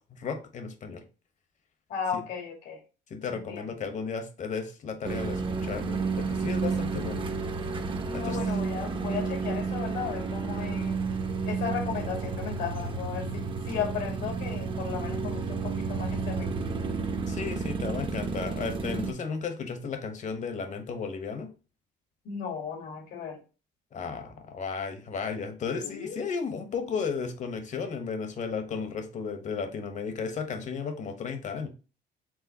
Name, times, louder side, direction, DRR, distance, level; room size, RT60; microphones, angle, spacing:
voice 1, 0.1-1.0 2.1-2.2 3.1-7.2 8.1-8.4 17.3-21.5 23.9-31.7, left 5 dB, 45° left, 7 dB, 1.0 m, -34 dB
voice 2, 1.9-2.8 3.3-3.7 8.1-11.0 11.5-16.5 22.2-23.4 25.8-26.2, left 7 dB, 85° left, -1 dB, 2.2 m, -35 dB
sound 1, 5.0-19.1, right 4 dB, 30° right, 0.6 m, -31 dB
4.8 x 3.7 x 2.8 m, 0.34 s
cardioid pair, 110°, 17 cm